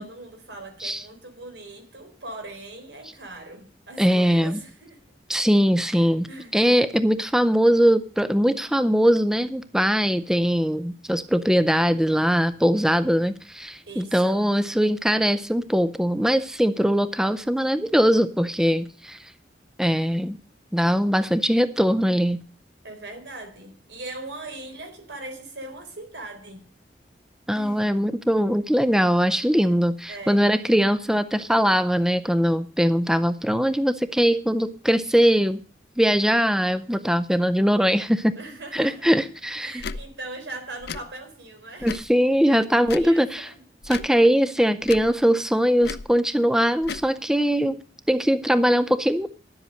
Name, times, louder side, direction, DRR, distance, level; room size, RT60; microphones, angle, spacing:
voice 1, 0.0-5.0 5.8-6.6 13.9-14.6 22.8-26.7 27.5-27.9 29.6-29.7 30.1-30.5 38.3-39.2 39.6-41.9 42.5-43.6, right 2 dB, 85° right, 3.8 m, -40 dB
voice 2, 4.0-4.6 5.3-6.3 6.5-19.3 19.8-20.4 20.7-22.4 27.5-35.6 36.0-38.3 38.7-39.8 41.8-43.5 43.9-47.8 48.1-49.3, equal, 5° right, 0.4 m, -21 dB
Tick / Tick-tock, 39.8-40.0 40.8-41.0 41.8-42.1 42.8-43.1 43.8-44.1 44.8-45.1 45.8-46.1 46.8-47.1, left 5 dB, 65° left, 0.6 m, -34 dB
11.0 x 7.8 x 6.5 m
head